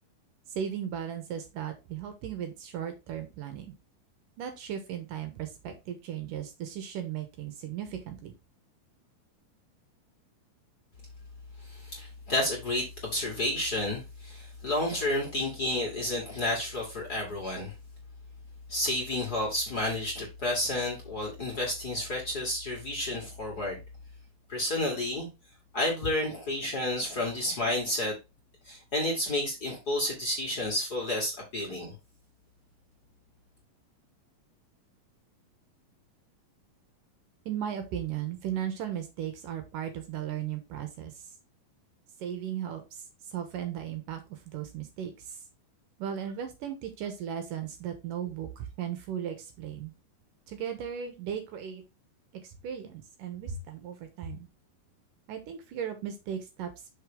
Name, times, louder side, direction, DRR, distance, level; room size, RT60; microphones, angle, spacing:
voice 1, 0.6-3.7 4.4-8.3 37.5-41.2 42.2-42.8 43.3-45.4 46.0-49.9 50.5-51.8 52.4-54.5 55.3-56.9, right 9 dB, 70° right, 2.6 m, -36 dB
voice 2, 11.6-17.7 18.7-23.8 24.5-25.3 25.7-28.1 28.6-31.9, left 1 dB, 30° left, 2.2 m, -31 dB
6.6 x 5.6 x 3.7 m
omnidirectional pair, 4.1 m